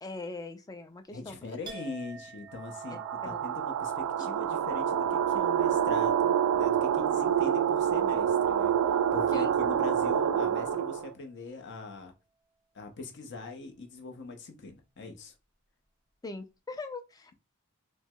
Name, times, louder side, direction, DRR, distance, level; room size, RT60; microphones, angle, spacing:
voice 1, 0.0-1.6 2.9-3.0 9.3-9.5 16.2-17.3, left 3 dB, 15° left, 0.4 m, -41 dB
voice 2, 1.1-12.1 12.7-15.3, left 3 dB, 55° left, 0.7 m, -42 dB
Chink clink, 1.6-9.3 9.7-10.3, right 4 dB, 20° right, 0.7 m, -49 dB
sound 1, 2.7-11.1, right 8 dB, 80° right, 0.3 m, -27 dB
4.5 x 2.1 x 2.2 m
head